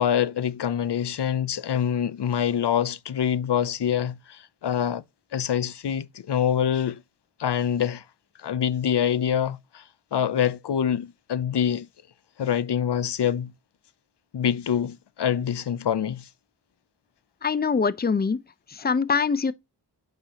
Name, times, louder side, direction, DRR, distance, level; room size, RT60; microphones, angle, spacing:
voice 1, 0.0-5.0 5.3-7.0 7.4-8.0 8.4-9.8 10.1-11.9 12.4-13.5 14.3-16.3, left 9 dB, 85° left, 0.6 m, -25 dB
voice 2, 17.4-18.4 18.7-19.5, left 5 dB, 25° left, 0.5 m, -23 dB
8.7 x 5.8 x 2.9 m
wide cardioid pair, 45°, 40 cm